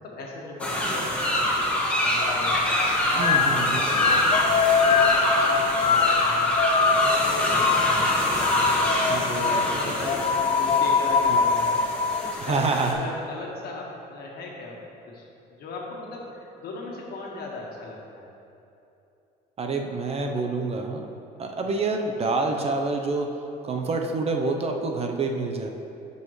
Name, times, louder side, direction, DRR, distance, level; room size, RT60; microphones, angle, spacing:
voice 1, 0.0-1.7 2.0-2.8 3.1-6.5 6.8-11.8 12.2-12.6 12.9-14.8 15.1-15.2 15.6-18.2, left 2 dB, 65° left, -2 dB, 1.5 m, -38 dB
sound 1, 0.6-12.9, left 1 dB, 5° left, 1.5 m, -25 dB
sound 2, 2.2-12.3, left 5 dB, 35° left, 0.4 m, -24 dB
voice 2, 3.2-3.8 9.1-9.9 11.3-11.4 12.4-13.0 19.6-21.1 21.4-23.4 23.6-25.7, right 3 dB, 35° right, 3 dB, 0.7 m, -27 dB
12.0 x 5.5 x 3.2 m, 2.8 s
cardioid pair, 110°, 17 cm